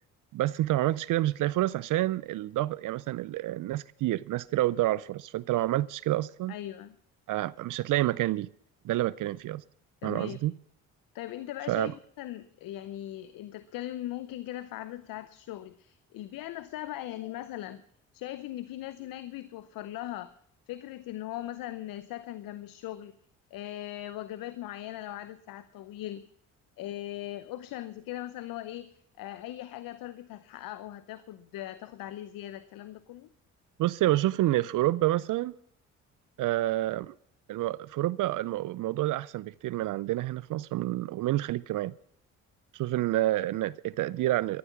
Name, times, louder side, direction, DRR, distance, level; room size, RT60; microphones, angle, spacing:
voice 1, 0.3-6.5 7.3-8.5 8.8-9.6 10.0-10.5 11.7-11.9 33.8-35.5 36.4-37.1 37.5-41.9 42.7-44.6, right 15 dB, 60° right, 0.5 m, -28 dB
voice 2, 6.5-7.0 10.0-10.4 11.1-17.8 18.1-20.3 20.7-23.1 23.5-26.2 26.8-33.3, left 14 dB, 70° left, 0.8 m, -39 dB
13.5 x 11.5 x 6.0 m
hypercardioid pair, 55°, 36 cm